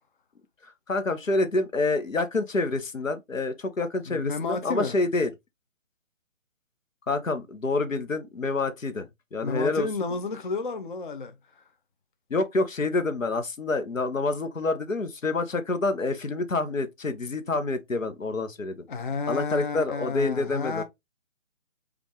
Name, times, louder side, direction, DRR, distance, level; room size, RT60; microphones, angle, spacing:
voice 1, 0.6-5.3 7.1-10.1 12.3-18.8 19.3-20.8, left 3 dB, 85° left, 1.0 m, -27 dB
voice 2, 4.1-4.9 9.4-11.3 18.9-20.8, left 4 dB, 40° left, 0.5 m, -31 dB
5.1 x 2.4 x 3.0 m
figure-of-eight pair, 145°, 38 cm